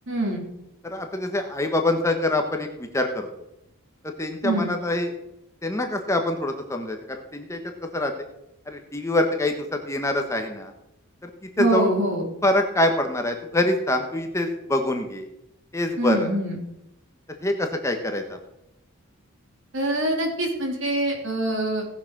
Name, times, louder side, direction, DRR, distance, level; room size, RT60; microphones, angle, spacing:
voice 1, 0.1-0.4 4.4-4.7 11.6-12.2 16.0-16.6 19.7-21.9, right 1 dB, 60° right, 1 dB, 3.3 m, -24 dB
voice 2, 0.8-3.3 4.2-5.1 5.6-8.1 8.7-10.7 11.2-11.3 11.6-11.9 12.4-15.3 15.7-16.3 17.4-18.4, left 1 dB, 15° left, 4 dB, 1.2 m, -25 dB
17.5 x 6.7 x 6.1 m, 0.85 s
head